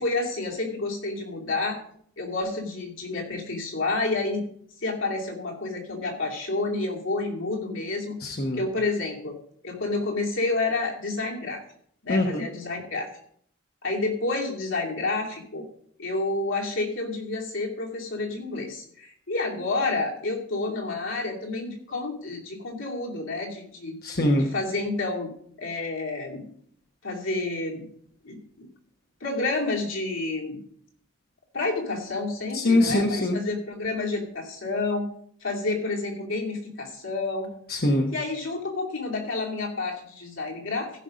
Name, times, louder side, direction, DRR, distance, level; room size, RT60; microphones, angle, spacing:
voice 1, 0.0-1.8 2.2-4.5 4.8-8.2 8.5-9.4 9.6-11.6 12.0-13.1 13.8-15.7 16.0-24.0 24.3-25.3 25.6-26.5 27.0-27.9 28.2-28.7 29.2-30.6 31.5-35.1 35.4-37.5 38.1-40.9, left 3 dB, 80° left, -1 dB, 2.7 m, -29 dB
voice 2, 8.2-8.6 12.1-12.4 24.0-24.5 32.5-33.4 37.7-38.1, left 1 dB, 50° left, 2 dB, 1.1 m, -23 dB
15.0 x 5.4 x 5.1 m, 0.63 s
head